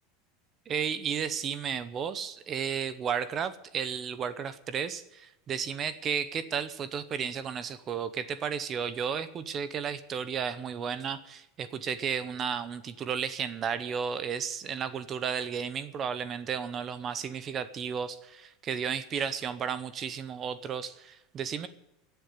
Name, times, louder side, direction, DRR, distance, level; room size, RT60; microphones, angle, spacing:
voice 1, 0.7-21.7, right 7 dB, 25° right, 14 dB, 0.8 m, -33 dB
15.5 x 8.1 x 9.4 m, 0.87 s
supercardioid pair, 170°, 0 cm